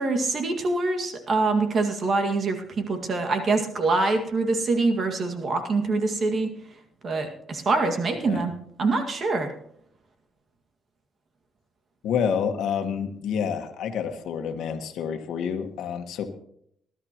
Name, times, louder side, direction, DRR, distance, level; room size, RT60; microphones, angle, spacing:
voice 1, 0.0-6.5 7.0-8.5 8.8-9.5, right 3 dB, 50° right, 5 dB, 1.9 m, -24 dB
voice 2, 12.0-16.3, left 7 dB, 80° left, 6 dB, 1.4 m, -28 dB
20.0 x 12.0 x 3.0 m, 0.70 s
cardioid pair, 90°, 0 cm